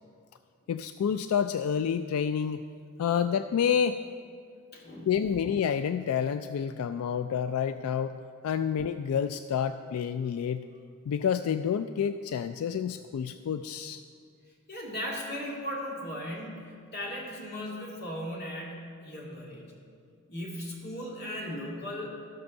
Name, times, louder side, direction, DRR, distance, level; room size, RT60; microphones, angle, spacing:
voice 1, 0.7-2.6 3.0-4.0 5.1-10.7 11.1-14.0, left 7 dB, 85° left, 10 dB, 0.3 m, -29 dB
voice 2, 4.7-5.1 14.7-19.6 20.3-22.1, equal, 50° left, -3 dB, 2.4 m, -37 dB
14.0 x 5.3 x 6.5 m, 2.2 s
head